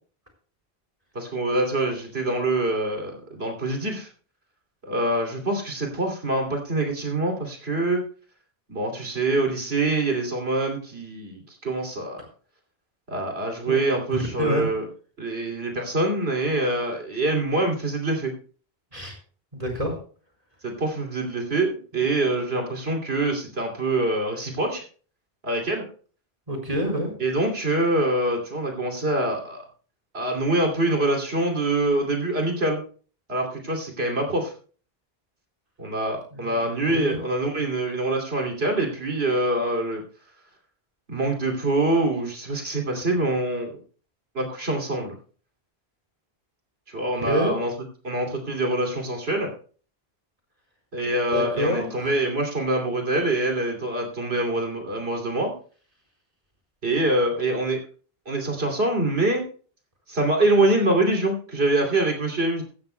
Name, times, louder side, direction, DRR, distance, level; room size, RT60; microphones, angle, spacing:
voice 1, 1.1-4.1 4.8-8.0 8.7-12.2 13.1-14.9 15.2-18.3 20.6-24.8 25.4-25.8 27.2-29.6 30.1-32.8 33.3-34.5 35.8-40.0 41.1-43.8 44.3-45.2 46.9-47.7 48.0-49.5 50.9-55.5 56.8-57.8 58.3-59.4 60.1-62.6, right 2 dB, 80° right, 2 dB, 3.0 m, -25 dB
voice 2, 14.1-14.7 18.9-19.2 19.5-19.9 26.5-27.1 36.3-36.6 36.9-37.2 47.3-47.5 51.3-52.1, right 1 dB, 35° right, 1 dB, 4.5 m, -27 dB
16.0 x 13.0 x 2.2 m, 0.40 s
omnidirectional pair, 1.0 m